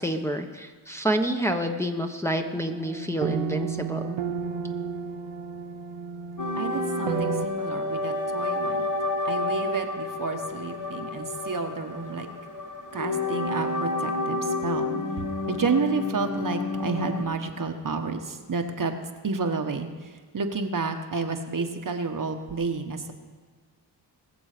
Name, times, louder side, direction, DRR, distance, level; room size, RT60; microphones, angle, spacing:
voice 1, 0.0-4.2, right 1 dB, 5° left, 2 dB, 1.1 m, -28 dB
sound 1, 2.2-7.5, right 7 dB, 90° right, 0.8 m, -32 dB
sound 2, 6.4-17.2, left 2 dB, 45° left, 1.5 m, -30 dB
voice 2, 6.6-8.9 9.2-12.3 12.9-14.9 15.2-18.9 19.2-19.9 20.3-23.1, right 4 dB, 45° right, 5 dB, 1.2 m, -30 dB
20.5 x 7.1 x 5.1 m, 1.5 s
cardioid pair, 65°, 44 cm